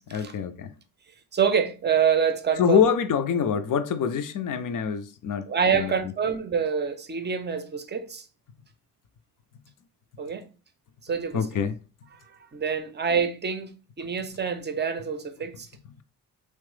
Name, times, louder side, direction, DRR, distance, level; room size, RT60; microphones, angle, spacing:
voice 1, 0.1-0.7 2.6-6.1 11.3-11.8, left 7 dB, 50° left, 0.5 m, -25 dB
voice 2, 1.3-2.9 5.5-8.2 10.2-10.5 11.0-11.4 12.5-15.7, right 6 dB, 25° right, 0.6 m, -26 dB
3.0 x 2.0 x 3.2 m
hypercardioid pair, 45°, 42 cm